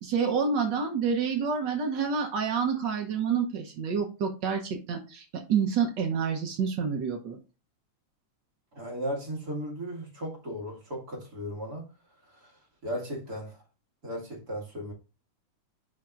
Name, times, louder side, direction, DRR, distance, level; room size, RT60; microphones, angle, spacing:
voice 1, 0.0-5.2 5.5-7.4, right 6 dB, 80° right, 0.9 m, -28 dB
voice 2, 8.7-11.9 12.3-13.6 14.0-14.9, equal, 35° right, 2.3 m, -36 dB
10.5 x 4.4 x 2.5 m
omnidirectional pair, 3.3 m